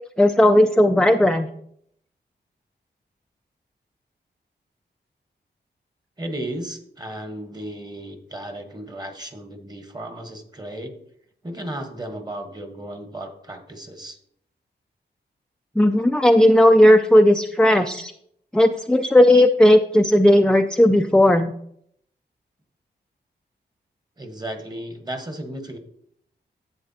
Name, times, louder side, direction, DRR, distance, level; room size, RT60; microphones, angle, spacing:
voice 1, 0.2-1.5 15.8-18.1 18.5-21.5, left 1 dB, 5° left, 6 dB, 0.4 m, -15 dB
voice 2, 6.2-11.0 11.4-14.2 24.2-25.8, right 1 dB, 20° right, 6 dB, 1.3 m, -34 dB
11.0 x 8.0 x 2.8 m, 0.71 s
cardioid pair, 80°, 18 cm